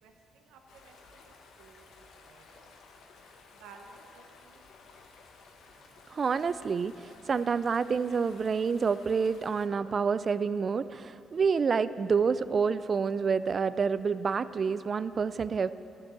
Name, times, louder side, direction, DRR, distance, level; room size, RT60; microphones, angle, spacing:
voice 1, 0.0-2.7 3.1-4.6, right 4 dB, 90° right, 3 dB, 0.9 m, -56 dB
sound 1, 0.7-9.7, left 4 dB, 75° left, 1.3 m, -55 dB
voice 2, 6.1-15.7, right 5 dB, 45° right, 15 dB, 0.4 m, -28 dB
12.0 x 7.6 x 8.8 m, 2.8 s
cardioid pair, 90°, 0 cm